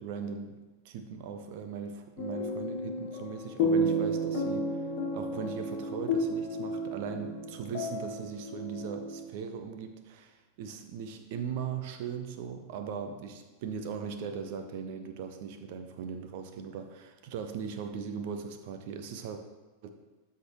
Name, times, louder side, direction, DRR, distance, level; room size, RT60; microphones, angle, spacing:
voice 1, 0.0-19.4 19.8-19.9, right 6 dB, 50° right, 7 dB, 0.7 m, -39 dB
sound 1, 2.2-9.2, equal, 45° left, 1.4 m, -32 dB
13.0 x 5.9 x 3.1 m, 1.2 s
figure-of-eight pair, 90°, 0 cm